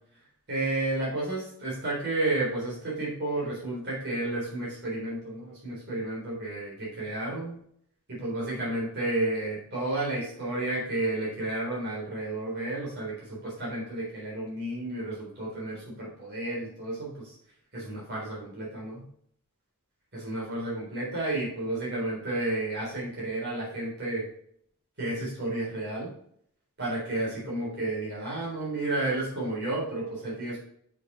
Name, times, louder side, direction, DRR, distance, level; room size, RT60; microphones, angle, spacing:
voice 1, 0.5-7.6 8.1-17.3 17.7-19.0 20.1-24.3 25.0-26.1 26.8-30.6, right 2 dB, 50° right, -6 dB, 3.6 m, -31 dB
6.6 x 5.2 x 5.7 m, 0.67 s
head